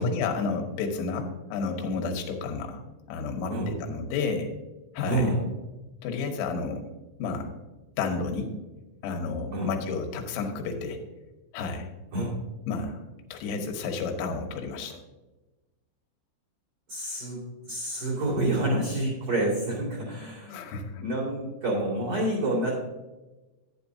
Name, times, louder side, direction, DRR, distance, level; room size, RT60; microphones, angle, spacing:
voice 1, 0.0-2.8 3.1-4.5 5.0-5.3 6.0-6.9 7.2-7.5 8.0-8.5 9.0-11.0 11.5-11.9 12.7-13.0 13.3-15.0 20.5-21.0, left 4 dB, 85° left, 3 dB, 3.7 m, -31 dB
voice 2, 5.1-5.4 9.5-9.7 12.1-12.3 16.9-20.7 21.0-22.8, right 1 dB, 45° right, -4 dB, 2.4 m, -28 dB
11.5 x 10.0 x 2.7 m, 1.1 s
omnidirectional pair, 5.9 m